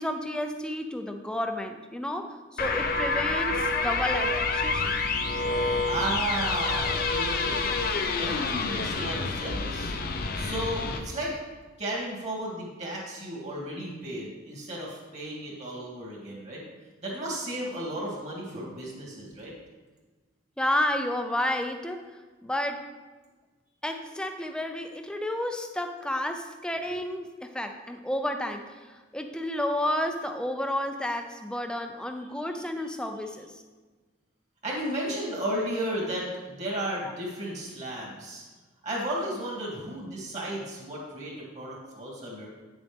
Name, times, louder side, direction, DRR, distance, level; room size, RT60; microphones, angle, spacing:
voice 1, 0.0-4.9 20.6-22.9 23.8-33.5 37.0-37.1, left 1 dB, 5° left, 6 dB, 0.5 m, -31 dB
sound 1, 2.6-11.0, left 3 dB, 50° left, 0.7 m, -28 dB
voice 2, 5.4-7.8 8.1-9.9 10.3-11.4 11.8-16.6 17.0-19.5 34.6-38.4 38.8-42.5, right 1 dB, 35° right, -3 dB, 2.3 m, -34 dB
9.0 x 7.1 x 3.5 m, 1.3 s
head